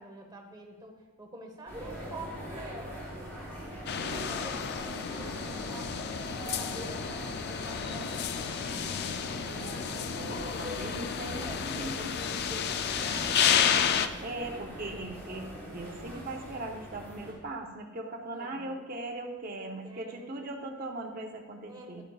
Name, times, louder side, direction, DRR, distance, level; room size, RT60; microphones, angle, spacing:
voice 1, 0.0-3.4 4.1-6.0 6.4-8.8 10.3-11.0 11.3-13.6 18.3-18.9 19.6-20.6 21.7-22.0, right 1 dB, 20° right, 2 dB, 1.1 m, -46 dB
sound 1, 1.7-17.3, right 1 dB, 10° left, 3.1 m, -42 dB
sound 2, 3.9-14.1, left 8 dB, 45° left, 0.4 m, -31 dB
voice 2, 3.9-4.3 9.5-11.9 14.2-22.0, right 2 dB, 40° right, 1 dB, 0.8 m, -40 dB
11.5 x 10.0 x 2.4 m, 1.2 s
head